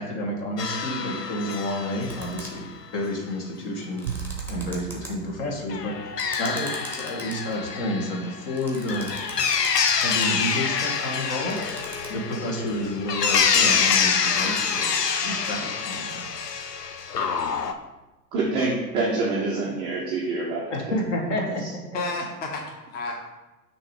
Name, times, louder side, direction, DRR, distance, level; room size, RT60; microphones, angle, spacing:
voice 1, 0.0-2.6 2.9-6.0 6.4-9.1 10.0-11.6 12.1-16.5 20.7-21.6 21.9-22.0, left 1 dB, 45° left, 1 dB, 1.5 m, -30 dB
sound 1, 0.6-2.6 5.7-17.7, left 6 dB, 85° left, 0.6 m, -26 dB
sound 2, 2.1-2.7 3.8-5.1 6.2-7.8 8.6-10.3 11.3-12.1, right 1 dB, 5° left, 1.2 m, -40 dB
sound 3, 4.1-6.6, right 8 dB, 30° right, 0.7 m, -37 dB
voice 2, 18.3-20.6, right 3 dB, 15° right, -5 dB, 0.3 m, -26 dB
voice 3, 21.9-23.1, left 3 dB, 20° left, 1 dB, 0.8 m, -32 dB
6.3 x 2.9 x 5.1 m, 1.1 s
figure-of-eight pair, 95°, 47 cm